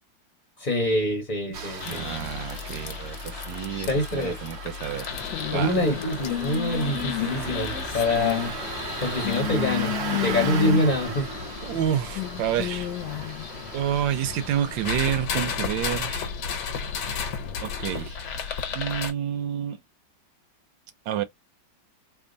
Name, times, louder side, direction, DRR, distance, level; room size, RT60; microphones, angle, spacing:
voice 1, 0.6-2.0 3.9-4.4 5.5-8.6 9.0-11.3, left 1 dB, 35° left, 0.9 m, -25 dB
Engine starting, 1.5-14.9, right 3 dB, 55° right, 0.8 m, -37 dB
sound 1, 1.8-19.1, left 8 dB, 70° left, 1.4 m, -32 dB
voice 2, 1.8-5.1 5.5-5.7 9.6-9.7 11.6-12.9 13.7-16.2 17.6-18.2 18.7-19.8 21.1-21.2, right 10 dB, 85° right, 1.3 m, -29 dB
3.5 x 2.2 x 3.8 m
omnidirectional pair, 2.0 m